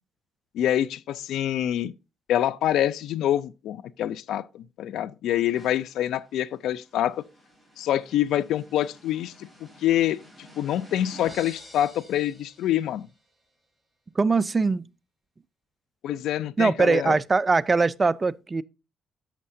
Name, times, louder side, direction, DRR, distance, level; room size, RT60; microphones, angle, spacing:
voice 1, 0.5-1.9 2.3-7.2 7.8-10.2 10.6-13.1 16.0-17.2, left 12 dB, 80° left, 0.5 m, -26 dB
sound 1, 5.5-13.1, equal, 5° left, 4.9 m, -50 dB
voice 2, 14.2-14.9 16.6-18.6, right 4 dB, 25° right, 0.4 m, -22 dB
11.0 x 7.5 x 2.7 m
cardioid pair, 90°, 0 cm